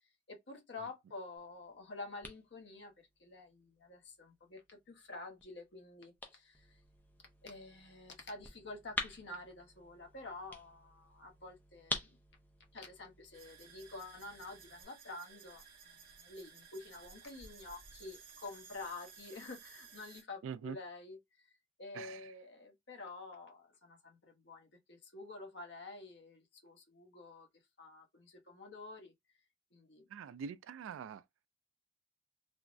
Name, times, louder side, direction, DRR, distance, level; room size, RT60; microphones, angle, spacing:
voice 1, 0.3-6.8 7.4-12.2 12.7-21.5 21.8-27.5 27.8-29.1 29.7-30.0, left 3 dB, 60° left, 0.8 m, -49 dB
sound 1, 1.4-14.8, left 2 dB, 10° left, 0.4 m, -48 dB
sound 2, 13.3-20.2, right 6 dB, 50° right, 0.7 m, -57 dB
voice 2, 20.4-20.8 21.9-22.3 30.1-31.2, right 6 dB, 85° right, 0.3 m, -44 dB
3.4 x 2.0 x 2.5 m
head